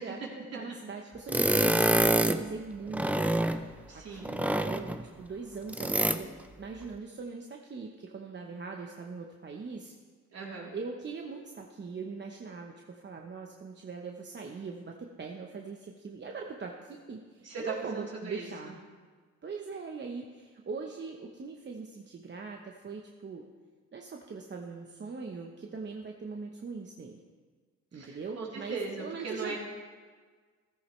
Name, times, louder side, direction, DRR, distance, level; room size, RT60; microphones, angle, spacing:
voice 1, 0.0-9.9 10.7-18.8 19.4-23.5 23.9-27.2 27.9-29.6, right 4 dB, 35° right, 1 dB, 1.0 m, -41 dB
sound 1, 1.3-2.5 2.9-3.7 4.2-5.0 5.7-6.2, right 1 dB, 5° right, 0.6 m, -26 dB
voice 2, 3.9-4.4 10.3-10.7 17.4-18.5 27.9-29.6, right 4 dB, 55° right, -4 dB, 3.6 m, -38 dB
14.5 x 13.5 x 3.3 m, 1.5 s
cardioid pair, 90°, 30 cm